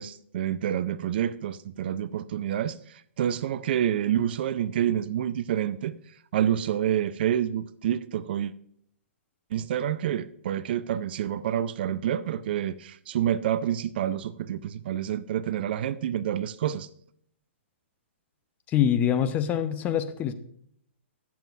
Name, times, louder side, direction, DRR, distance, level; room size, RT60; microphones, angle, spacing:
voice 1, 0.0-5.9 6.3-8.5 9.5-16.9, right 10 dB, 50° right, 0.4 m, -28 dB
voice 2, 18.7-20.3, left 9 dB, 20° left, 0.6 m, -24 dB
16.5 x 7.0 x 2.4 m
figure-of-eight pair, 120°, 7 cm